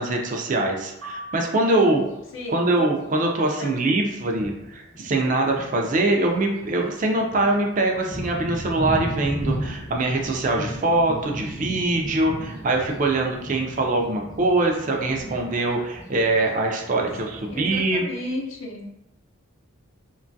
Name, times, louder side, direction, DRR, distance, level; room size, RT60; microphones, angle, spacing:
voice 1, 0.0-2.0 2.5-18.0, right 2 dB, 35° right, 1 dB, 0.4 m, -23 dB
sound 1, 1.0-2.3, right 1 dB, 60° right, 0.8 m, -41 dB
Thunder, 1.9-2.1 3.0-3.1 3.7-3.8 4.2-18.0, equal, 15° left, 0.6 m, -35 dB
voice 2, 2.3-2.8 3.4-3.8 17.2-19.1, left 1 dB, 65° left, -1 dB, 0.6 m, -35 dB
3.0 x 2.2 x 2.6 m, 0.88 s
head